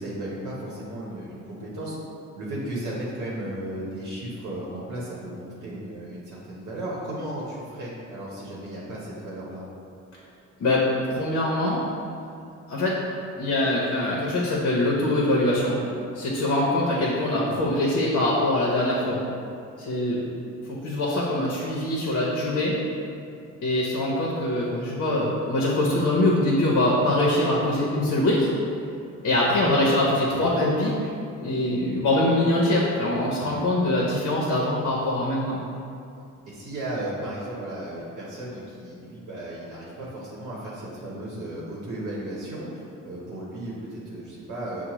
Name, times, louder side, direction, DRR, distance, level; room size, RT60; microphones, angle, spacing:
voice 1, 0.0-2.0 2.4-9.6 20.1-20.2 29.5-29.8 36.5-44.9, right 1 dB, 80° right, -6 dB, 0.9 m, -35 dB
voice 2, 10.6-11.8 12.7-13.0 13.4-15.8 16.1-19.2 19.8-20.2 20.7-22.8 23.6-28.5 29.2-31.0 31.4-35.6, left 1 dB, 60° left, -4 dB, 0.7 m, -23 dB
5.8 x 2.1 x 3.0 m, 2.6 s
cardioid pair, 90°, 30 cm